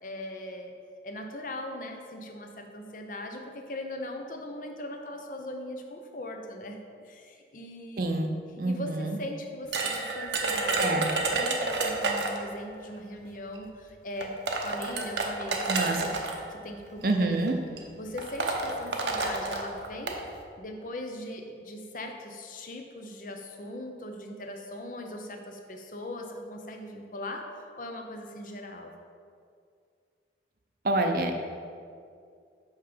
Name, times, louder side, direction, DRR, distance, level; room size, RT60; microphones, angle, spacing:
voice 1, 0.0-0.7 1.0-8.0 8.7-14.3 14.6-16.1 16.5-17.4 18.0-20.2 20.6-27.5 27.8-28.9, left 1 dB, 45° left, 4 dB, 0.7 m, -40 dB
voice 2, 8.0-9.2 10.8-11.1 15.7-16.0 17.0-17.6 30.8-31.4, right 2 dB, 50° right, 4 dB, 0.6 m, -27 dB
sound 1, 9.7-12.5 13.6-13.7 14.2-16.3 17.3-17.5 17.8-17.9 18.2-20.2, right 3 dB, 80° right, 0.8 m, -29 dB
5.8 x 5.6 x 5.1 m, 2.3 s
head